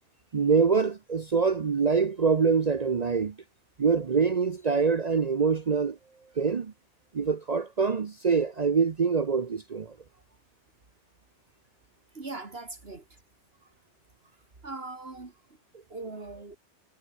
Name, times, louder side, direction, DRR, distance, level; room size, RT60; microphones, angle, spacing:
voice 1, 0.3-3.3 3.8-6.0 6.4-6.7 7.1-9.9, right 5 dB, 40° right, 0.8 m, -25 dB
voice 2, 12.1-13.0 13.6-13.7 14.6-15.3 15.9-16.6, right 3 dB, 60° right, 2.7 m, -40 dB
omnidirectional pair, 1.2 m